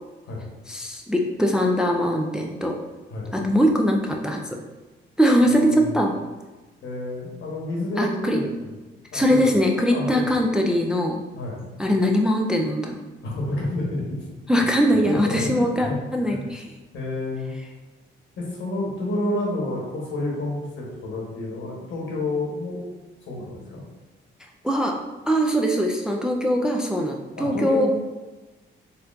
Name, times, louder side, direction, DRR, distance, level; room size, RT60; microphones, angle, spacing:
voice 1, 0.7-2.7 3.3-4.4 5.2-6.1 8.0-8.4 9.1-11.2 11.8-13.0 14.5-16.7 24.6-24.9 25.3-27.9, equal, 5° right, 1 dB, 0.3 m, -21 dB
voice 2, 5.4-5.9 6.8-8.7 9.1-9.5 9.9-10.3 11.3-11.6 13.2-14.7 15.0-16.5 16.9-17.5 18.4-22.9 23.2-23.8 27.4-27.9, left 1 dB, 75° left, -3 dB, 1.1 m, -30 dB
4.2 x 2.6 x 2.5 m, 1.2 s
cardioid pair, 90°, 20 cm